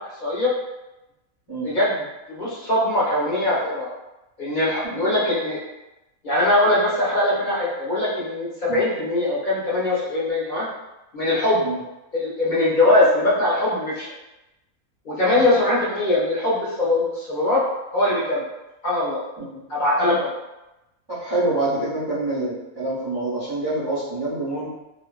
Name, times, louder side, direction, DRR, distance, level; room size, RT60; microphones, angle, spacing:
voice 1, 0.2-0.5 1.6-2.0 2.3-3.9 4.4-5.6 6.2-10.7 11.1-11.6 12.1-14.1 15.0-17.6 17.9-18.4 18.8-19.2 19.7-20.3, left 1 dB, 50° left, -8 dB, 0.6 m, -21 dB
voice 2, 21.1-24.7, right 2 dB, 35° right, -11 dB, 0.4 m, -26 dB
2.5 x 2.2 x 2.3 m, 0.97 s
omnidirectional pair, 1.5 m